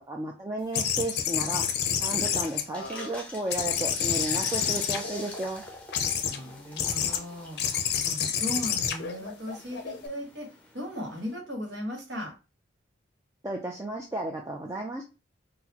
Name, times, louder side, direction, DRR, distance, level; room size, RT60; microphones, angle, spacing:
voice 1, 0.1-1.6 2.0-5.6 13.4-15.0, right 1 dB, 15° right, 0 dB, 0.4 m, -33 dB
sound 1, 0.7-3.2 3.5-5.4 5.9-6.4 6.8-7.2 7.6-10.1, left 8 dB, 55° left, 0.5 m, -29 dB
sound 2, 2.1-11.3, left 2 dB, 5° left, 0.7 m, -44 dB
voice 2, 6.2-7.6 8.0-12.3, left 1 dB, 60° right, 1 dB, 1.2 m, -37 dB
4.0 x 2.0 x 2.8 m, 0.29 s
head